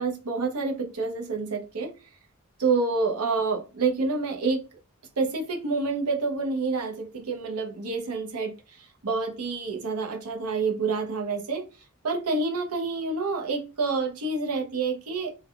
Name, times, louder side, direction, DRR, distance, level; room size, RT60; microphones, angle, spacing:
voice 1, 0.0-1.9 2.6-4.6 5.2-11.6 12.0-15.4, right 4 dB, 75° right, 0.7 m, -28 dB
3.3 x 2.2 x 2.3 m
head